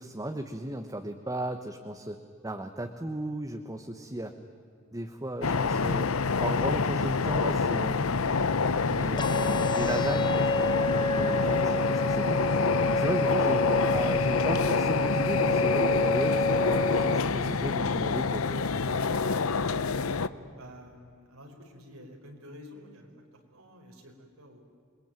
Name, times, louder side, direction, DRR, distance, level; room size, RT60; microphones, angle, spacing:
voice 1, 0.0-4.4 4.9-6.1 6.4-8.1 8.9-12.4 12.9-18.8, right 1 dB, 15° right, 5 dB, 1.2 m, -35 dB
sound 1, 5.4-20.3, left 4 dB, 85° left, 0.9 m, -27 dB
sound 2, 9.2-17.2, left 1 dB, 20° left, 0.6 m, -29 dB
voice 2, 20.6-24.6, equal, 90° right, 2 dB, 5.1 m, -50 dB
28.0 x 21.5 x 9.1 m, 2.4 s
head